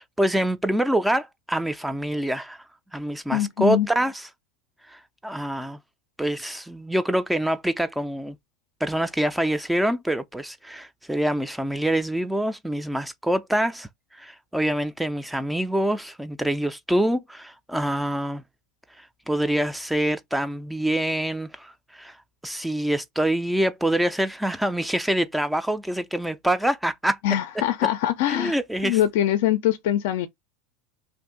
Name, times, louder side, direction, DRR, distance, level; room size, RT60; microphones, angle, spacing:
voice 1, 0.0-2.6 2.9-4.3 4.9-5.8 6.2-8.4 8.8-18.4 19.0-22.2 22.4-27.2 28.3-29.0, right 1 dB, 5° right, 0.3 m, -25 dB
voice 2, 3.3-3.9 27.2-28.6 28.8-30.3, left 12 dB, 70° left, 0.4 m, -23 dB
2.6 x 2.5 x 3.6 m
hypercardioid pair, 105°, 0 cm